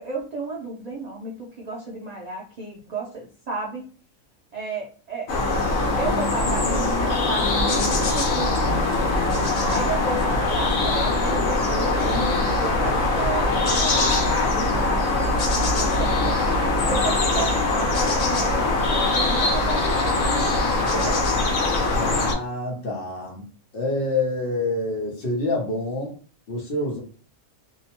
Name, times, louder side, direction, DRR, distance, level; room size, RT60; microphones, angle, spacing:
voice 1, 0.0-3.9 4.5-5.3 5.9-9.0 9.7-15.3 15.6-16.4 16.9-20.3 20.8-21.2, right 3 dB, 80° right, -3 dB, 0.3 m, -33 dB
sound 1, 5.3-22.3, left 2 dB, 70° left, 1.1 m, -22 dB
voice 2, 20.9-21.3 21.9-23.5 23.7-26.1 26.5-27.0, left 2 dB, 50° left, -1 dB, 0.8 m, -27 dB
2.7 x 2.1 x 2.9 m, 0.40 s
omnidirectional pair, 1.4 m